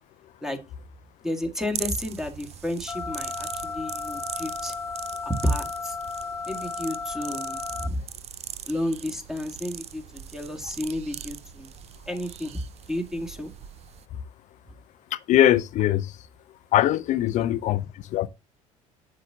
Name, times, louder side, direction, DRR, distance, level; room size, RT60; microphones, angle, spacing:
voice 1, 1.2-4.7 5.2-6.0 6.5-8.0 8.7-11.7 12.1-12.6 12.9-13.5 17.4-17.5, left 1 dB, 5° right, 1.9 m, -31 dB
sound 1, 1.7-14.0, right 10 dB, 35° right, 0.6 m, -40 dB
sound 2, 2.9-7.9, left 5 dB, 15° left, 0.9 m, -34 dB
voice 2, 15.1-16.2 16.7-18.3, left 12 dB, 40° left, 0.5 m, -22 dB
7.8 x 7.7 x 2.7 m
figure-of-eight pair, 60°, 18 cm